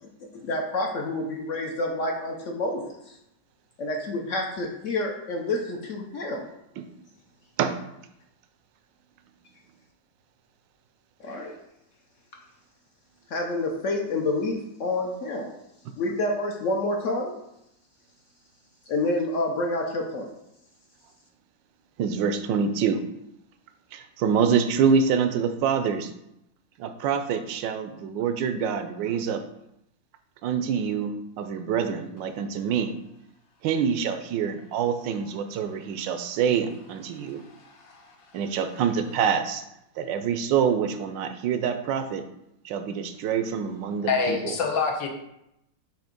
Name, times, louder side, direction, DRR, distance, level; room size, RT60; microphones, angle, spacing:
voice 1, 0.0-3.2 3.8-6.5 11.2-11.5 13.3-15.5 16.0-17.3 18.9-20.3, left 2 dB, 60° left, 1 dB, 0.8 m, -28 dB
voice 2, 22.0-23.0 23.9-26.1 26.8-29.4 30.4-32.9 33.6-37.4 38.3-39.7 40.0-42.2 42.6-44.5, right 7 dB, 80° right, 8 dB, 1.3 m, -26 dB
voice 3, 37.5-37.9 44.0-45.1, left 5 dB, 85° left, 2 dB, 1.7 m, -26 dB
7.8 x 2.8 x 5.1 m, 0.83 s
omnidirectional pair, 2.0 m